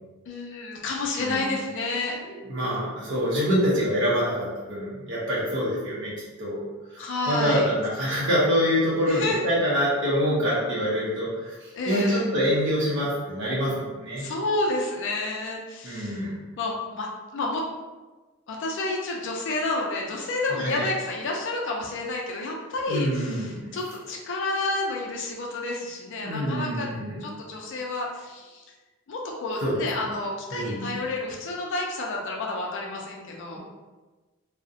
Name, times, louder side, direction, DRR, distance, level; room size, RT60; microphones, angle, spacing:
voice 1, 0.3-2.2 7.0-7.7 9.0-9.4 11.7-12.2 14.2-17.6 18.5-26.9 27.2-28.6 29.1-33.6, left 2 dB, 60° left, -1 dB, 0.4 m, -30 dB
voice 2, 2.3-6.1 6.4-6.6 6.9-11.5 11.9-14.3 15.8-16.3 20.6-20.8 22.9-23.7 26.2-27.2 29.6-29.7 30.5-30.9, equal, 60° right, -7 dB, 0.6 m, -25 dB
2.6 x 2.0 x 2.4 m, 1.2 s
head